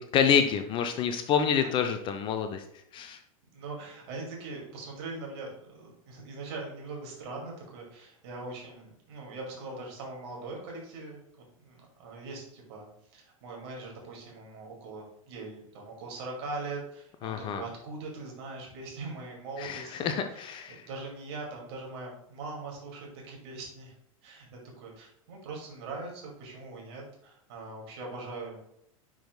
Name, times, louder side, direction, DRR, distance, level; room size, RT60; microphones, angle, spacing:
voice 1, 0.0-2.6 2.9-3.2 17.2-17.6 19.6-20.8, left 7 dB, 30° left, 7 dB, 0.5 m, -27 dB
voice 2, 3.5-11.2 11.6-23.9 24.2-28.6, right 3 dB, 50° right, -1 dB, 2.2 m, -41 dB
10.0 x 4.8 x 2.2 m, 0.73 s
figure-of-eight pair, 90°, 18 cm